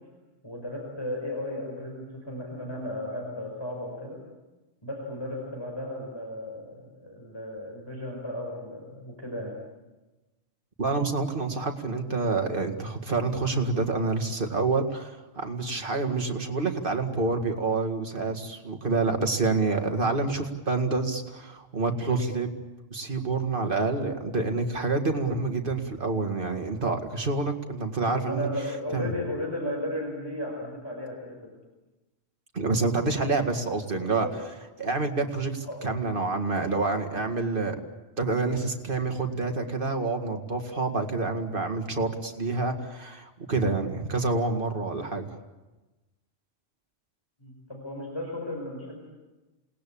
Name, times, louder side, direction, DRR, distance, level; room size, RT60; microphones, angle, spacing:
voice 1, 0.4-4.2 4.8-9.6 28.2-31.5 34.0-34.3 35.6-35.8 44.9-45.1 47.4-49.0, left 1 dB, 20° left, -1 dB, 5.2 m, -35 dB
voice 2, 10.8-22.6 22.9-28.5 28.9-29.1 32.5-34.3 34.8-37.8 38.2-45.4, right 3 dB, 45° right, 5 dB, 2.2 m, -28 dB
28.0 x 19.5 x 8.7 m, 1.1 s
omnidirectional pair, 1.3 m